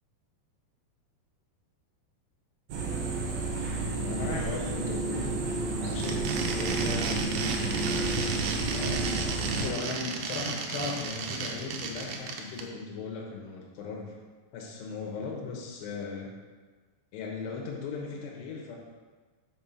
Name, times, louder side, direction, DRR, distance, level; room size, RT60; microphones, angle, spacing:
sound 1, 2.7-9.7, right 2 dB, 55° right, 1.8 m, -31 dB
voice 1, 4.0-5.4 5.8-7.8 8.7-14.2 14.5-16.3 17.1-18.8, left 4 dB, 80° left, -1 dB, 3.2 m, -38 dB
sound 2, 5.9-12.6, right 5 dB, 75° right, 2.3 m, -33 dB
6.0 x 5.7 x 6.0 m, 1.4 s
omnidirectional pair, 5.0 m